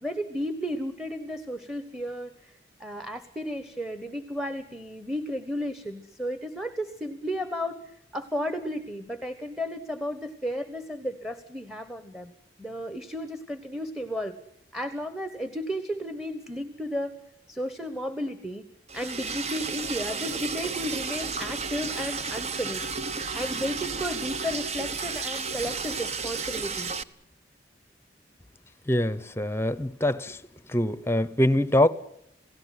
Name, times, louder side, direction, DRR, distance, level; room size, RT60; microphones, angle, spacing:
voice 1, 0.0-7.8 8.1-12.3 12.6-14.4 14.7-17.1 17.5-18.6 18.9-22.9 23.3-26.9, equal, ahead, 1.3 m, -33 dB
Liquid, 18.9-27.0, right 4 dB, 35° right, 0.9 m, -32 dB
voice 2, 28.9-30.4 30.7-31.9, left 1 dB, 15° left, 0.9 m, -24 dB
28.0 x 17.0 x 9.3 m
head